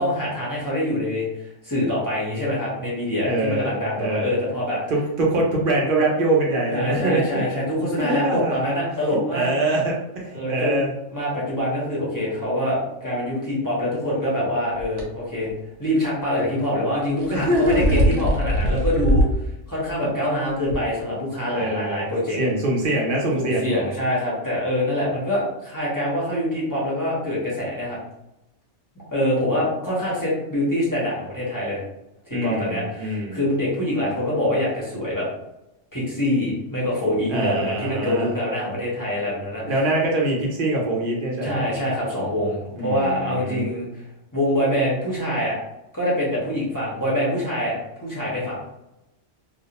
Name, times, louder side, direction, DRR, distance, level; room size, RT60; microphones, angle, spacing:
voice 1, 0.0-4.8 6.7-9.5 10.3-10.8 11.1-15.5 15.8-19.2 19.7-22.4 23.4-28.0 29.1-31.8 32.3-35.3 35.9-39.8 41.4-43.9 44.3-45.6 45.9-48.6, left 1 dB, 20° left, -7 dB, 0.6 m, -25 dB
voice 2, 3.2-4.4 4.9-7.2 8.1-8.5 9.3-10.9 17.3-18.2 21.5-22.1 22.4-23.7 32.3-33.4 37.3-38.3 39.6-41.6 42.8-43.7, right 1 dB, 55° right, -2 dB, 0.7 m, -23 dB
sound 1, 14.8-15.0 17.0-19.4 19.8-19.9 20.7-20.8, equal, 90° right, 1.1 m, -21 dB
2.4 x 2.0 x 2.8 m, 0.91 s
omnidirectional pair, 1.2 m